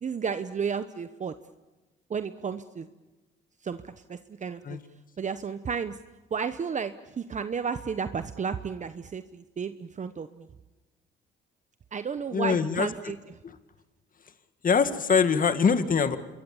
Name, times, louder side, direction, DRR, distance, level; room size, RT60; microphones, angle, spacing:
voice 1, 0.0-1.3 2.1-2.9 3.6-4.8 5.2-6.0 6.3-10.5 11.9-13.2, right 6 dB, 40° right, 11 dB, 1.0 m, -33 dB
voice 2, 12.3-12.9 14.6-16.2, left 6 dB, 45° left, 10 dB, 1.8 m, -23 dB
27.0 x 22.5 x 7.2 m, 1.2 s
cardioid pair, 90°, 20 cm